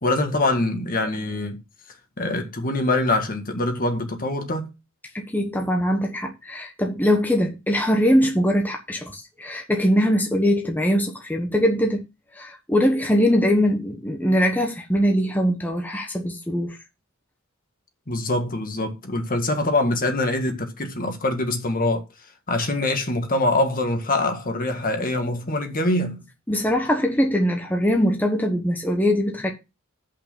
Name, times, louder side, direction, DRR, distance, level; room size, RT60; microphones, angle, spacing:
voice 1, 0.0-1.6 2.2-4.7 18.1-22.0 22.5-26.2, left 2 dB, 45° left, 1.8 m, -24 dB
voice 2, 5.1-12.0 12.3-16.8 26.5-29.5, equal, 10° left, 1.2 m, -22 dB
6.7 x 5.7 x 7.0 m
head